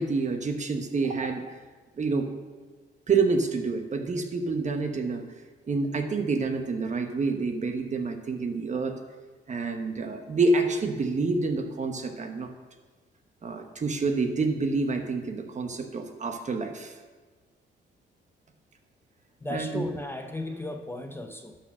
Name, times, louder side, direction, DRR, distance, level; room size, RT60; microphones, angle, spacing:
voice 1, 0.0-1.5 2.0-2.3 3.1-5.3 5.7-8.9 9.5-12.5 13.4-16.9 19.5-19.8, right 3 dB, 35° right, 5 dB, 1.1 m, -28 dB
voice 2, 19.4-21.6, left 1 dB, 10° left, 4 dB, 0.7 m, -35 dB
11.5 x 4.3 x 6.3 m, 1.4 s
cardioid pair, 90°, 20 cm